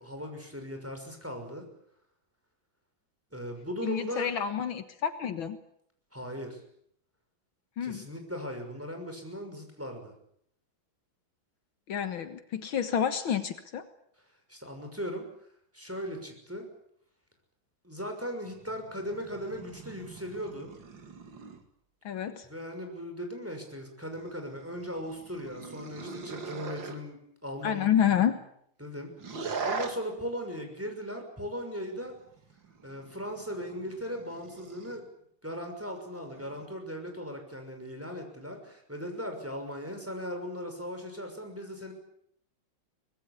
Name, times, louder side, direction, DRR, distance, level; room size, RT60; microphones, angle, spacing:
voice 1, 0.0-1.7 3.3-4.3 6.1-6.6 7.8-10.1 14.5-15.3 15.7-16.7 17.8-20.7 22.4-28.4 28.8-32.1 32.8-35.1 35.4-41.9, equal, 5° right, 4 dB, 6.1 m, -38 dB
voice 2, 3.8-5.6 7.8-8.1 11.9-13.8 22.1-22.5 27.6-28.4, left 9 dB, 75° left, 9 dB, 2.1 m, -29 dB
sound 1, 18.4-21.7 24.1-27.0 29.2-30.0 32.0-35.0 36.2-36.7, right 5 dB, 65° right, 3.0 m, -41 dB
24.5 x 20.5 x 8.6 m, 0.70 s
omnidirectional pair, 2.2 m